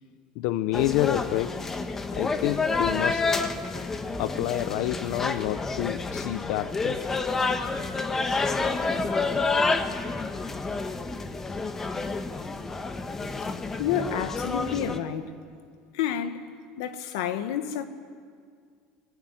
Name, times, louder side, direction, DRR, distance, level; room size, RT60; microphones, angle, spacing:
voice 1, 0.4-1.6 2.1-3.3 4.2-7.0, left 15 dB, 70° left, 12 dB, 0.8 m, -28 dB
sound 1, 0.7-15.0, left 3 dB, 20° left, 1.4 m, -29 dB
voice 2, 13.8-15.3 15.9-16.4 16.8-17.8, left 9 dB, 90° left, 9 dB, 1.8 m, -29 dB
25.5 x 20.5 x 9.6 m, 2.1 s
cardioid pair, 140°, 2 cm